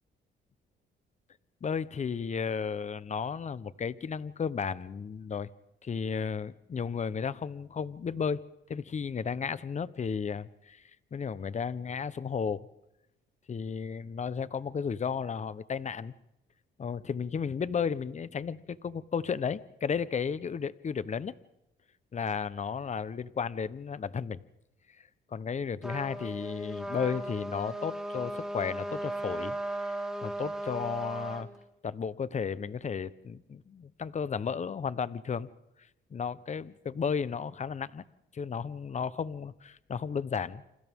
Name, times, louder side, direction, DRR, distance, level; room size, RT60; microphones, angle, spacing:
voice 1, 1.6-5.5 5.8-8.4 8.7-10.8 11.1-12.7 13.5-16.1 16.8-21.3 22.1-24.4 25.3-29.6 29.8-30.0 30.2-31.5 31.8-35.5 36.1-38.0 38.3-40.6, left 6 dB, 35° left, 16 dB, 0.9 m, -33 dB
Trumpet, 25.8-31.5, right 1 dB, 5° right, 3.3 m, -36 dB
29.0 x 27.0 x 3.7 m, 0.88 s
cardioid pair, 90°, 20 cm